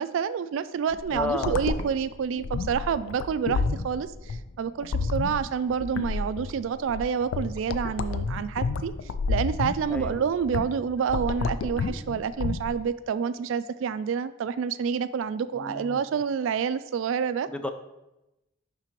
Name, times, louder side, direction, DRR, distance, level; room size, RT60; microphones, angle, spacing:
voice 1, 0.0-8.9 9.3-17.5, right 6 dB, 70° right, 15 dB, 0.3 m, -28 dB
sound 1, 0.9-12.8, left 4 dB, 85° left, 0.4 m, -30 dB
voice 2, 1.1-1.5 9.9-10.2 15.6-16.0 17.5-17.7, left 2 dB, 5° left, 7 dB, 0.4 m, -32 dB
11.0 x 3.7 x 3.0 m, 0.95 s
head